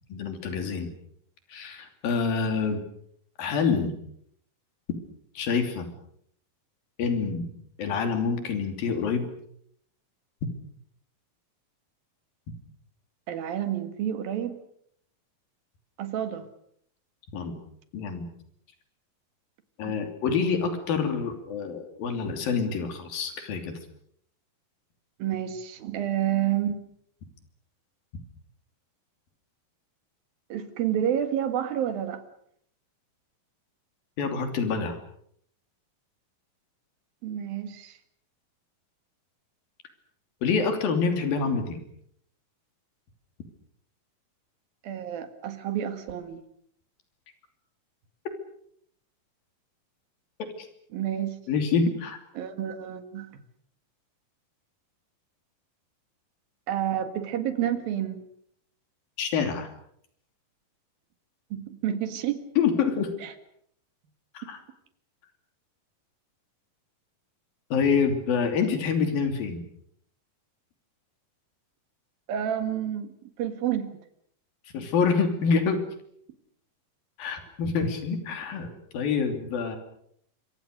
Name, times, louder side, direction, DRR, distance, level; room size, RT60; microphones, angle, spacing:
voice 1, 0.1-0.9 1.5-2.8 3.4-3.9 5.4-5.9 7.0-7.5 7.8-9.3 17.3-17.6 17.9-18.3 19.8-23.8 34.2-35.0 40.4-41.8 50.4-50.7 51.5-52.2 59.2-59.7 62.6-63.1 64.3-64.6 67.7-69.6 74.7-75.8 77.2-79.8, left 5 dB, 85° left, 7 dB, 4.7 m, -26 dB
voice 2, 13.3-14.6 16.0-16.5 19.9-20.0 25.2-26.8 30.5-32.2 37.2-38.0 44.8-46.4 50.9-51.4 52.4-53.3 56.7-58.3 61.5-62.5 63.2-63.3 64.4-64.5 72.3-73.9, right 10 dB, 90° right, 10 dB, 3.6 m, -29 dB
26.0 x 24.0 x 6.6 m, 0.68 s
omnidirectional pair, 4.0 m